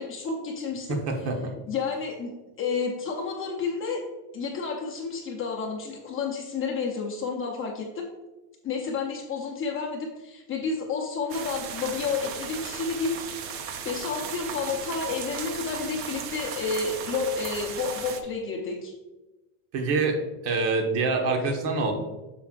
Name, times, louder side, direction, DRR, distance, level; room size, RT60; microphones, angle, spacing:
voice 1, 0.0-1.0 1.7-4.0 4.3-8.1 8.6-13.2 13.4-13.5 13.8-18.9, left 5 dB, 25° left, 1 dB, 0.7 m, -30 dB
voice 2, 0.9-1.5 19.7-20.2 20.4-21.9, right 3 dB, 55° right, 3 dB, 1.5 m, -25 dB
sound 1, 11.3-18.2, right 7 dB, 30° right, 0.4 m, -36 dB
8.0 x 6.2 x 2.5 m, 1.1 s
cardioid pair, 155°, 49 cm